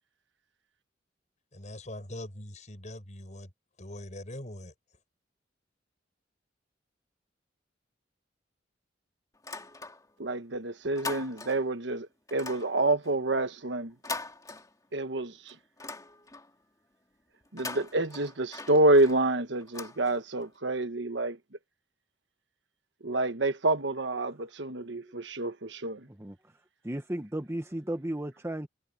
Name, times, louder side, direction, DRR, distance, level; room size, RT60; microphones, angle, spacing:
voice 1, 1.5-3.5 3.8-4.7, left 1 dB, 40° left, 7.9 m, -42 dB
sound 1, 9.3-10.3 10.6-11.8 12.3-15.1 15.5-16.6 17.4-20.5, left 3 dB, 20° left, 2.7 m, -42 dB
voice 2, 10.2-13.9 14.9-15.5 17.5-21.4 23.0-26.1, right 2 dB, 75° right, 1.3 m, -28 dB
voice 3, 26.1-26.5 26.8-28.7, right 1 dB, 15° right, 1.2 m, -35 dB
head